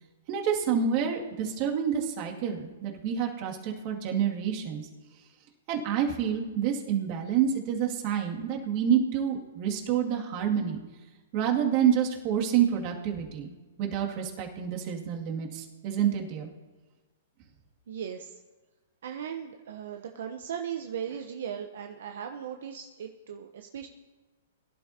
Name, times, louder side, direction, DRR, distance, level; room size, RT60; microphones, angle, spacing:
voice 1, 0.3-4.9 5.7-10.8 11.3-13.5 13.8-16.5, right 8 dB, 45° right, 0 dB, 2.3 m, -28 dB
voice 2, 17.9-18.4 19.0-23.9, right 8 dB, 70° right, 5 dB, 0.8 m, -37 dB
22.5 x 11.5 x 2.8 m, 1.2 s
hypercardioid pair, 125°, 0 cm